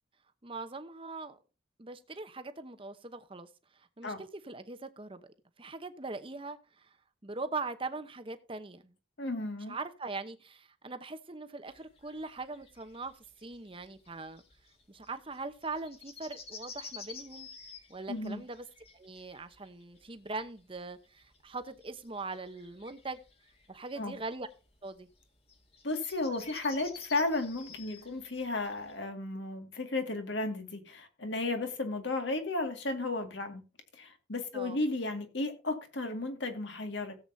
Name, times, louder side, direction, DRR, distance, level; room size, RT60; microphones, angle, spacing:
voice 1, 0.4-1.4 1.8-7.0 7.2-8.9 9.7-14.4 14.9-17.5 17.9-18.7 18.9-23.2 23.7-24.5 24.8-25.1 34.5-34.8, right 3 dB, 25° right, 0.9 m, -41 dB
voice 2, 9.2-9.8 18.1-18.4 24.0-24.2 25.8-33.6 33.9-37.2, left 2 dB, 65° left, 2.1 m, -34 dB
sound 1, 11.7-28.9, left 4 dB, 30° left, 1.9 m, -52 dB
17.0 x 8.0 x 2.7 m
head